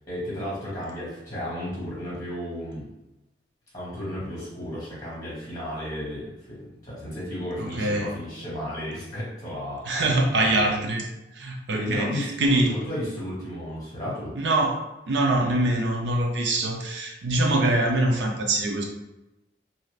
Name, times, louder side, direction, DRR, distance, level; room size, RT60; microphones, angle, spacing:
voice 1, 0.1-2.9 3.7-10.7 11.7-14.3, left 1 dB, 20° left, -7 dB, 1.3 m, -33 dB
voice 2, 7.6-8.1 9.9-11.1 11.4-12.7 14.3-14.8 15.1-18.8, right 2 dB, 85° right, 2 dB, 0.6 m, -24 dB
2.7 x 2.4 x 3.2 m, 0.96 s
head